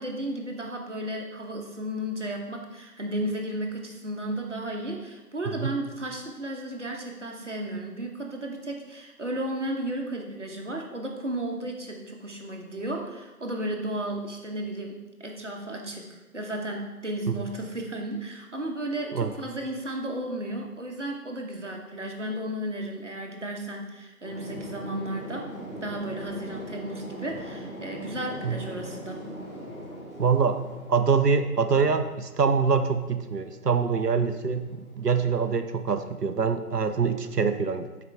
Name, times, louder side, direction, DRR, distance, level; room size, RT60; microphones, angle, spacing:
voice 1, 0.0-25.5 25.8-29.2, right 1 dB, 50° right, 1 dB, 1.2 m, -34 dB
sound 1, 24.2-35.6, right 1 dB, 20° left, 2.7 m, -41 dB
voice 2, 30.2-30.6 30.9-38.0, right 5 dB, 85° right, 8 dB, 0.8 m, -25 dB
12.5 x 4.8 x 3.4 m, 1.1 s
figure-of-eight pair, 175°, 46 cm